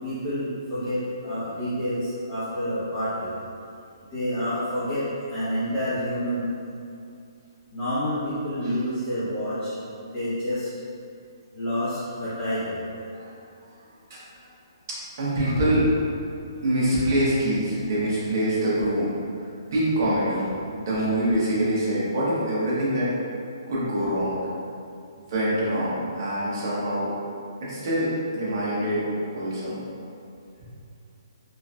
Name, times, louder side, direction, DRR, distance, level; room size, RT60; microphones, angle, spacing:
voice 1, 0.0-3.3 4.1-6.5 7.7-9.7 10.1-10.7 11.5-12.9, equal, 15° left, -17 dB, 0.9 m, -28 dB
voice 2, 15.2-15.9 16.6-19.1 19.7-23.1 23.7-24.4 25.3-27.1 27.6-29.0 29.3-29.8, right 1 dB, 45° right, -9 dB, 1.0 m, -25 dB
3.7 x 2.6 x 2.2 m, 2.5 s
hypercardioid pair, 155°, 2 cm